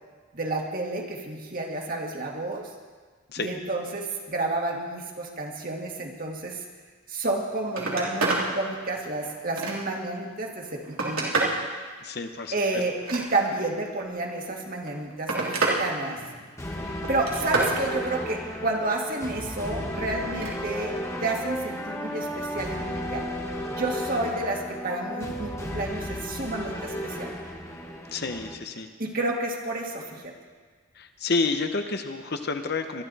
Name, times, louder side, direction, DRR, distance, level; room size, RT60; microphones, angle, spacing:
voice 1, 0.3-2.7 3.4-6.6 7.1-11.3 12.5-16.2 16.8-20.9 21.2-23.3 23.8-27.3 29.0-30.3, right 2 dB, 40° right, 0 dB, 2.0 m, -30 dB
Telephone, 7.2-7.4 7.7-8.5 9.0-10.0 10.6-11.6 12.9-13.7 14.7-15.8 16.2-16.6 17.0-17.8 20.2-20.6 22.0-22.1, right 3 dB, 90° right, 3.0 m, -28 dB
voice 2, 12.0-12.5 28.1-28.9 31.0-33.0, left 3 dB, 50° left, 7 dB, 0.9 m, -29 dB
sound 1, 16.6-28.5, left 1 dB, 15° left, 1.2 m, -34 dB
22.5 x 12.5 x 4.1 m, 1.5 s
head